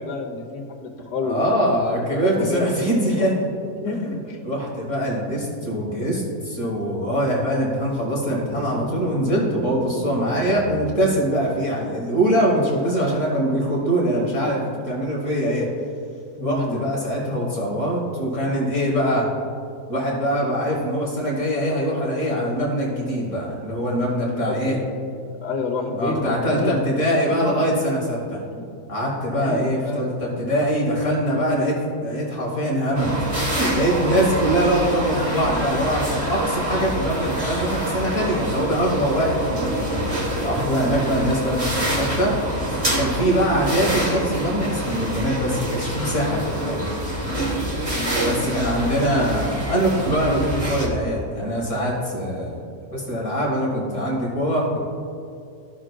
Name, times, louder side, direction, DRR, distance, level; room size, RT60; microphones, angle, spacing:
voice 1, 0.0-1.5 2.2-3.2 3.7-4.4 16.4-16.8 24.3-24.8 25.4-26.8 27.3-27.9 28.6-28.7 29.3-30.2 47.9-48.4, left 3 dB, 80° left, 2 dB, 1.6 m, -29 dB
voice 2, 1.2-3.5 4.4-15.7 16.4-19.3 19.9-24.8 26.0-28.4 28.9-39.9 40.4-42.3 42.9-46.9 47.9-52.6 52.9-54.8, equal, 50° left, -3 dB, 1.8 m, -23 dB
sound 1, 8.2-11.9, equal, 65° right, 0.4 m, -36 dB
sound 2, 32.9-50.9, right 1 dB, 25° right, 1.3 m, -26 dB
14.0 x 6.2 x 2.3 m, 2.5 s
omnidirectional pair, 1.7 m